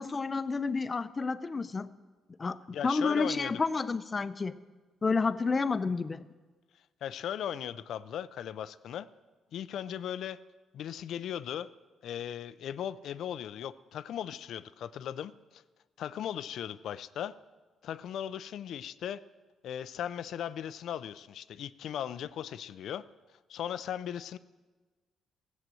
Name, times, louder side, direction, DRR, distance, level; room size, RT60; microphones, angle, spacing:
voice 1, 0.0-1.9 2.4-4.6 5.0-6.2, left 4 dB, 30° left, 13 dB, 0.6 m, -30 dB
voice 2, 2.7-3.5 7.0-9.1 9.5-10.4 10.7-11.7 12.0-15.6 16.0-17.3 17.8-19.2 19.6-23.0 23.5-24.4, left 10 dB, 75° left, 15 dB, 0.5 m, -37 dB
16.0 x 7.4 x 7.7 m, 1.3 s
cardioid pair, 90°, 0 cm